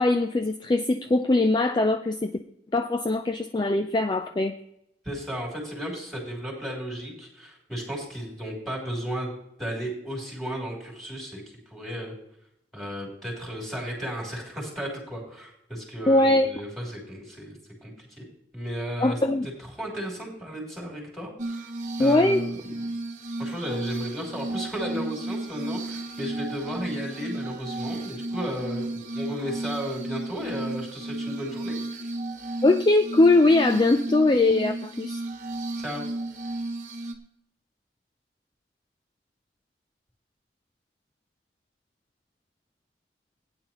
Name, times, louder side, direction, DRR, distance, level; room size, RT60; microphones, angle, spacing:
voice 1, 0.0-2.3 2.7-4.6 16.1-16.5 19.0-19.5 22.0-22.4 32.6-35.2, left 2 dB, 25° left, 7 dB, 0.4 m, -21 dB
voice 2, 5.0-11.4 11.7-12.1 12.7-17.6 17.8-18.3 18.5-19.2 19.6-21.7 22.0-22.6 23.4-31.8 35.8-36.0, equal, ahead, -2 dB, 3.6 m, -34 dB
Glass, 21.4-37.2, right 2 dB, 40° right, 1.1 m, -33 dB
16.5 x 9.8 x 3.0 m, 0.79 s
head